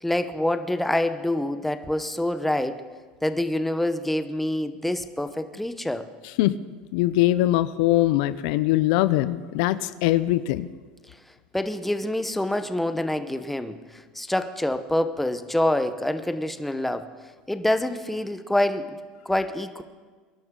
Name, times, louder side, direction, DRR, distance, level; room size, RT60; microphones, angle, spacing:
voice 1, 0.0-2.8 3.2-6.1 11.5-17.1 17.5-19.0 19.2-19.8, left 1 dB, 5° left, 10 dB, 0.9 m, -26 dB
voice 2, 6.9-10.7, left 15 dB, 75° left, 15 dB, 0.5 m, -22 dB
23.0 x 11.5 x 3.8 m, 1.5 s
supercardioid pair, 105°, 4 cm